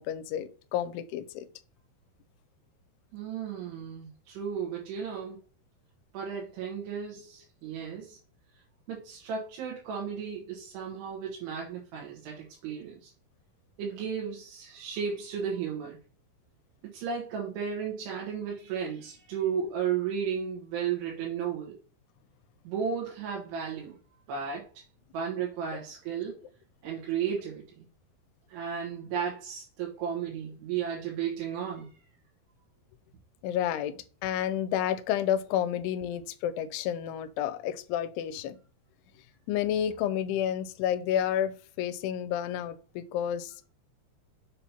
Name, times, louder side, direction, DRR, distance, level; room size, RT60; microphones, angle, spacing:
voice 1, 0.0-1.5 33.4-33.9 34.2-38.6 39.5-43.7, left 10 dB, 85° left, 2.5 m, -30 dB
voice 2, 3.1-5.4 6.1-8.2 8.9-13.1 13.8-16.0 16.9-21.8 22.6-24.0 24.3-24.8 25.1-26.4 26.8-27.8 28.5-31.9, right 7 dB, 85° right, 3.3 m, -34 dB
7.2 x 2.8 x 5.7 m
omnidirectional pair, 4.7 m